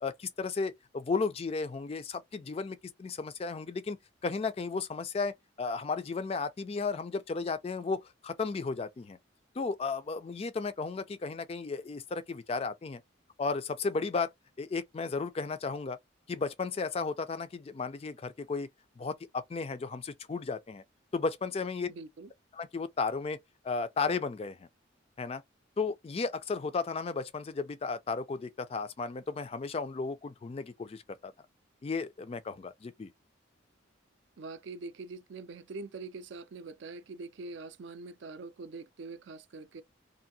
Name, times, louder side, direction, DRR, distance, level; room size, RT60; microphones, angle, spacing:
voice 1, 0.0-4.0 4.2-9.2 9.6-13.0 13.4-14.3 14.6-16.0 16.3-18.7 19.0-20.8 21.1-21.9 22.5-23.4 23.6-24.7 25.2-25.4 25.8-31.3 31.8-33.1, left 4 dB, 30° left, 0.3 m, -34 dB
voice 2, 21.9-22.3 34.4-39.8, right 3 dB, 65° right, 0.4 m, -44 dB
2.7 x 2.6 x 2.6 m
head